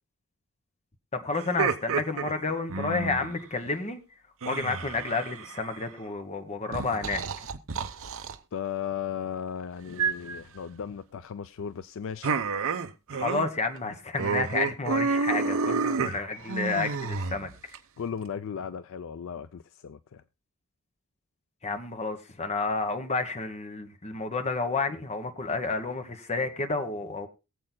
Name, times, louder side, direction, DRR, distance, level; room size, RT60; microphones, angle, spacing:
voice 1, 1.1-4.0 4.4-7.2 13.1-17.5 21.6-27.3, left 3 dB, 30° left, 1.2 m, -30 dB
sound 1, 1.4-3.4 4.4-5.8 6.7-8.4 10.0-10.4 12.2-13.5 13.8-13.9 14.2-17.8, right 5 dB, 65° right, 0.8 m, -30 dB
voice 2, 8.5-12.4 18.0-20.2, left 7 dB, 60° left, 0.4 m, -36 dB
22.5 x 7.6 x 2.2 m
head